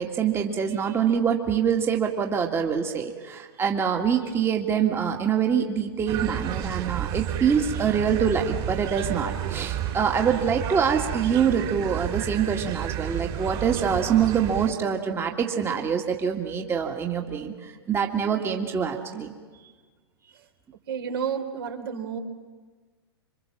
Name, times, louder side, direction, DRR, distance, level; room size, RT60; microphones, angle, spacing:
voice 1, 0.0-19.3, right 7 dB, 20° right, 2 dB, 2.1 m, -25 dB
sound 1, 6.1-14.7, right 10 dB, 35° right, 3.3 m, -31 dB
voice 2, 20.9-22.2, right 7 dB, 60° right, 5 dB, 3.5 m, -31 dB
27.5 x 24.5 x 7.5 m, 1.4 s
figure-of-eight pair, 110°, 14 cm